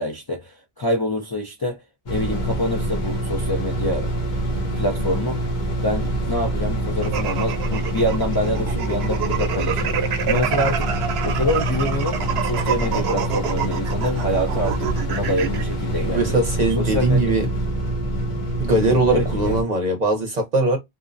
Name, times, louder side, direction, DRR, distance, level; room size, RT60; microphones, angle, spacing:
voice 1, 0.0-1.8 2.1-4.1 4.7-5.4 5.8-10.9 11.2-16.4 16.8-17.4 19.1-19.6, left 1 dB, 30° left, 0.4 m, -26 dB
sound 1, 2.1-19.6, right 1 dB, 50° left, 0.8 m, -25 dB
sound 2, 7.0-15.6, right 8 dB, 80° right, 0.8 m, -27 dB
voice 2, 16.1-17.5 18.6-20.8, right 2 dB, 45° right, 0.8 m, -20 dB
2.4 x 2.1 x 2.4 m
omnidirectional pair, 1.0 m